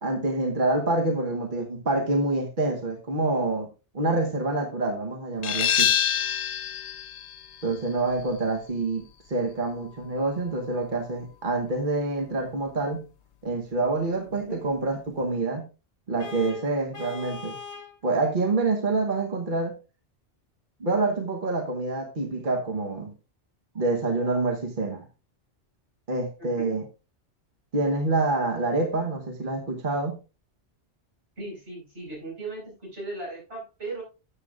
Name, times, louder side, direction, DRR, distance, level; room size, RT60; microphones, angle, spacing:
voice 1, 0.0-3.7 3.9-5.9 7.6-13.0 13.4-15.6 16.1-17.6 18.0-19.8 20.8-23.1 23.7-25.1 26.1-26.9 27.7-30.2, right 2 dB, 45° right, 3 dB, 1.3 m, -27 dB
sound 1, 5.4-10.8, left 9 dB, 80° left, 0.9 m, -28 dB
Vehicle horn car horn honking, 16.2-18.0, left 5 dB, 15° left, 1.4 m, -40 dB
voice 2, 26.4-26.7 31.4-32.6 32.9-34.0, right 2 dB, 75° right, -3 dB, 5.3 m, -37 dB
12.5 x 7.9 x 2.5 m, 0.30 s
omnidirectional pair, 1.2 m